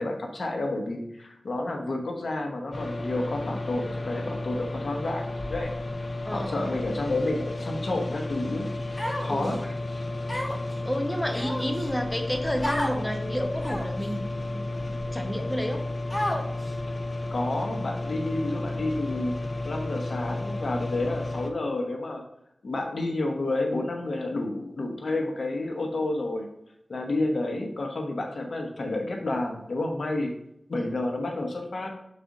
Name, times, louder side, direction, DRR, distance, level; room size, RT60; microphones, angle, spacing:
voice 1, 0.0-5.2 5.5-5.7 6.3-9.6 17.3-22.2 22.6-26.5 26.9-30.4 30.7-31.9, left 2 dB, 75° left, 3 dB, 1.0 m, -30 dB
sound 1, 2.7-21.5, left 2 dB, 55° left, 0.7 m, -33 dB
voice 2, 6.2-6.8 9.3-9.7 10.8-15.8, equal, 10° left, 4 dB, 1.0 m, -31 dB
Human voice, 9.0-9.6 10.3-10.7 11.3-11.9 12.6-13.0 13.6-14.0 14.7-14.8 16.1-16.7, left 1 dB, 30° left, 1.3 m, -31 dB
6.7 x 4.2 x 3.8 m, 0.77 s
cardioid pair, 40°, 0 cm